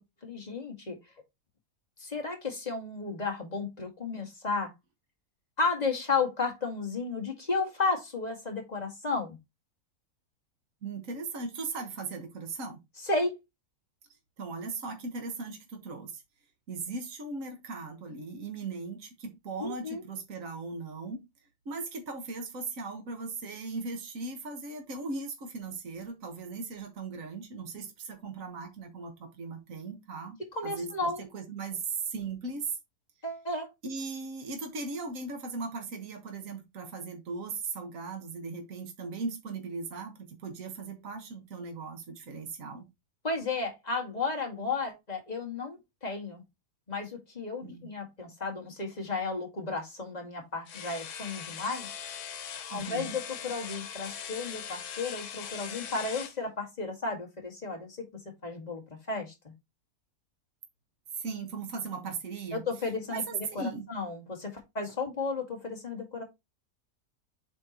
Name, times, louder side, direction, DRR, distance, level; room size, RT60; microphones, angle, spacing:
voice 1, 0.2-1.0 2.0-4.7 5.6-9.4 13.0-13.4 19.6-20.0 30.5-31.2 33.2-33.7 43.2-46.4 46.9-51.9 52.7-58.0 58.4-58.8 59.1-59.3 62.5-66.2, left 3 dB, 30° left, 2.0 m, -33 dB
voice 2, 10.8-12.8 14.4-16.2 16.7-21.2 21.7-30.4 30.6-30.9 31.2-32.8 33.8-42.9 47.6-47.9 52.7-53.1 61.2-62.6 63.1-63.9, right 4 dB, 60° right, 1.8 m, -38 dB
sound 1, 50.7-56.4, left 8 dB, 90° left, 1.4 m, -40 dB
7.9 x 4.5 x 2.9 m
omnidirectional pair, 1.6 m